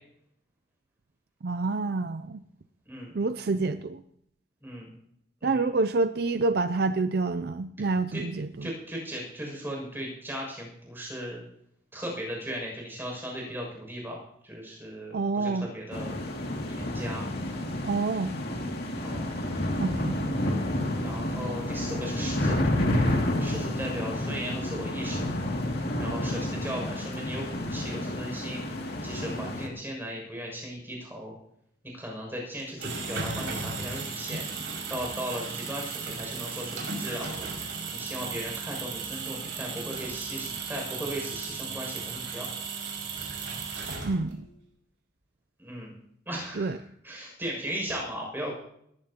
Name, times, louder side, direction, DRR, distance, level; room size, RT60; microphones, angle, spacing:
voice 1, 1.4-2.4 3.1-4.0 5.4-8.7 15.1-15.7 17.8-18.3 19.8-20.2 44.0-44.5 46.6-46.8, right 3 dB, 55° right, 12 dB, 0.4 m, -27 dB
voice 2, 8.6-11.4 11.9-16.2 16.6-17.3 19.0-19.4 21.0-22.6 23.4-25.3 26.0-28.6 29.0-31.3 31.9-34.4 34.9-37.5 37.9-42.5 45.6-45.9 46.3-46.8 47.0-48.5, equal, 10° right, -1 dB, 6.5 m, -37 dB
sound 1, 15.9-29.7, left 1 dB, 55° left, 2.4 m, -30 dB
sound 2, 32.6-44.4, right 4 dB, 85° right, 5.8 m, -35 dB
20.5 x 14.5 x 2.9 m, 0.72 s
head